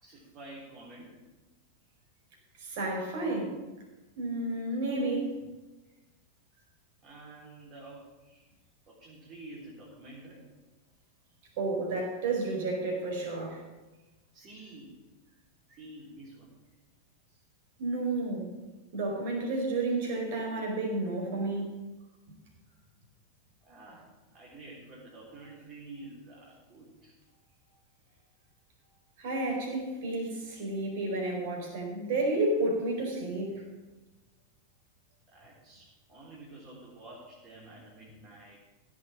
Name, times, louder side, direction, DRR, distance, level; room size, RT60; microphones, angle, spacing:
voice 1, 0.0-1.2 7.0-8.5 8.9-10.4 14.3-15.0 15.7-16.5 23.6-27.1 35.3-38.6, right 2 dB, 35° right, -5 dB, 3.9 m, -49 dB
voice 2, 2.6-3.5 4.2-5.3 11.6-13.6 17.8-18.5 18.9-21.7 29.2-33.6, right 2 dB, 50° right, 0 dB, 4.5 m, -31 dB
16.0 x 6.4 x 7.6 m, 1.2 s
figure-of-eight pair, 90°, 0 cm